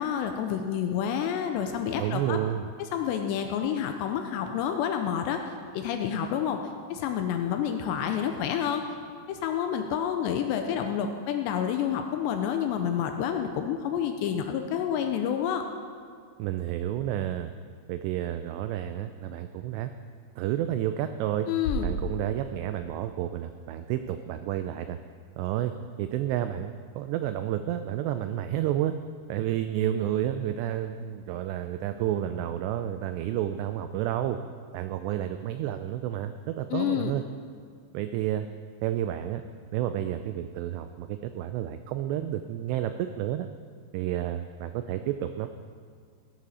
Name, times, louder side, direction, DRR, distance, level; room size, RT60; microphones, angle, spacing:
voice 1, 0.0-2.4 2.9-5.4 5.7-6.6 6.9-8.8 9.3-15.6 21.5-21.9 36.7-37.1, left 9 dB, 85° left, 5 dB, 2.6 m, -29 dB
voice 2, 2.0-2.7 16.4-17.5 17.9-19.9 20.4-21.5 21.8-25.0 25.4-25.7 26.0-28.9 29.3-34.4 34.7-37.2 37.9-38.5 38.8-39.4 39.7-43.5 43.9-45.5, right 12 dB, 90° right, 9 dB, 2.4 m, -30 dB
sound 1, 21.6-23.7, equal, 65° left, 3.0 m, -35 dB
16.5 x 11.5 x 4.2 m, 2.1 s
omnidirectional pair, 5.5 m